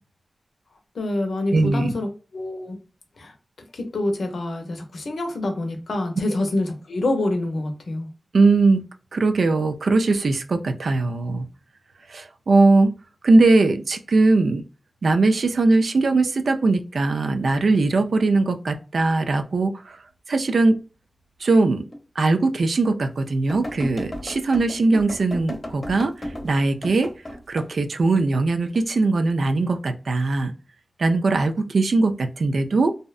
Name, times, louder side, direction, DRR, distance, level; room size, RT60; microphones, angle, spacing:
voice 1, 0.9-2.8 3.2-3.3 3.7-8.1, left 2 dB, 85° left, 5 dB, 0.6 m, -26 dB
voice 2, 1.5-1.9 8.3-8.8 9.1-11.5 12.1-12.9 13.2-14.6 15.0-20.0 20.3-20.8 21.4-21.8 22.2-26.1 26.4-27.1 27.5-30.5 31.0-33.0, right 3 dB, 80° right, 7 dB, 0.3 m, -20 dB
sound 1, 21.9-22.0 22.6-22.7 23.5-27.7 28.2-28.8 29.4-29.8, equal, 35° left, 0.7 m, -34 dB
2.6 x 2.1 x 2.3 m, 0.33 s
cardioid pair, 45°, 0 cm